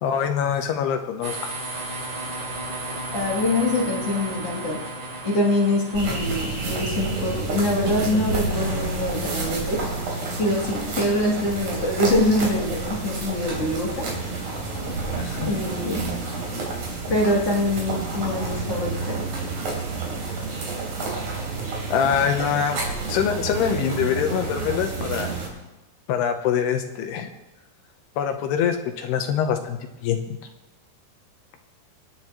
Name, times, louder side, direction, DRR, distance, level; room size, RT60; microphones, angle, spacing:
voice 1, 0.0-1.5 9.4-9.5 15.2-15.6 21.9-22.8 23.1-25.3 26.1-27.3 28.2-30.4, left 8 dB, 75° left, 5 dB, 2.7 m, -24 dB
sound 1, 1.2-8.1, right 2 dB, 75° right, 6.3 m, -34 dB
voice 2, 3.1-4.8 5.2-9.8 10.4-13.9 15.5-16.0 17.1-19.2, left 1 dB, 35° left, -4 dB, 3.4 m, -24 dB
sound 2, 5.9-25.5, right 3 dB, 45° right, 4.1 m, -29 dB
27.0 x 9.4 x 3.1 m, 1.0 s
omnidirectional pair, 5.1 m